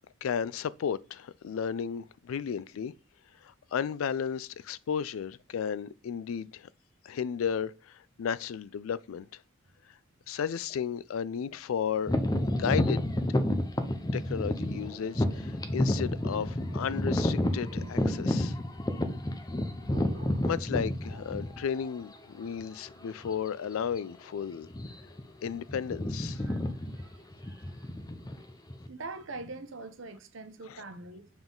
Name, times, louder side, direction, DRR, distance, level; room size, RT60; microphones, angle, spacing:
voice 1, 0.2-2.9 3.4-6.7 7.0-9.4 10.3-12.2 12.5-13.0 14.1-18.6 20.4-24.7 25.4-26.4 30.7-30.8, left 7 dB, 80° left, 0.4 m, -34 dB
sound 1, 12.1-21.8 22.5-22.6 23.2-23.5 23.7-24.0 24.6-25.2 25.5-28.9, left 1 dB, 20° left, 0.6 m, -30 dB
sound 2, 14.0-21.8, right 1 dB, 45° right, 1.9 m, -52 dB
voice 2, 26.3-27.9 28.9-31.3, right 3 dB, 70° right, 0.8 m, -44 dB
7.0 x 3.8 x 3.8 m
head